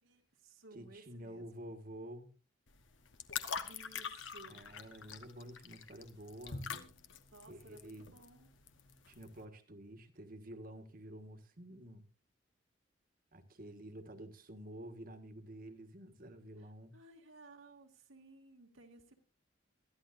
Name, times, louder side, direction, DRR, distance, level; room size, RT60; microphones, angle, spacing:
voice 1, 0.0-1.5 3.7-4.6 7.3-8.5 16.9-19.2, right 2 dB, 80° right, 2.3 m, -58 dB
voice 2, 0.7-2.3 4.5-6.7 7.5-8.1 9.1-12.1 13.3-17.0, right 1 dB, 45° right, 1.6 m, -50 dB
sound 1, 2.7-9.4, left 6 dB, 65° left, 1.2 m, -45 dB
22.0 x 13.0 x 2.6 m
head